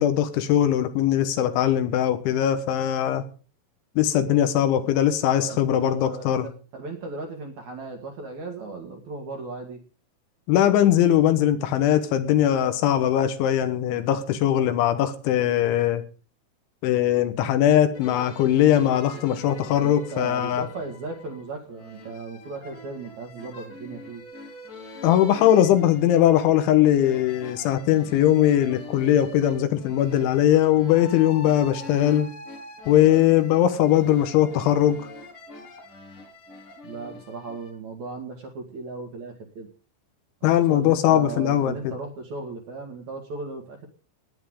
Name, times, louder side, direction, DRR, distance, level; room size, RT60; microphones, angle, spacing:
voice 1, 0.0-3.2 4.0-6.5 10.5-16.0 16.8-20.7 25.0-32.3 32.9-35.1 40.4-41.9, left 11 dB, 80° left, 3.4 m, -20 dB
voice 2, 5.5-9.8 19.8-24.2 36.8-39.7 40.4-43.9, right 3 dB, 55° right, 2.2 m, -36 dB
sound 1, 17.9-37.7, left 2 dB, 55° left, 1.5 m, -43 dB
19.5 x 9.5 x 3.7 m
omnidirectional pair, 5.6 m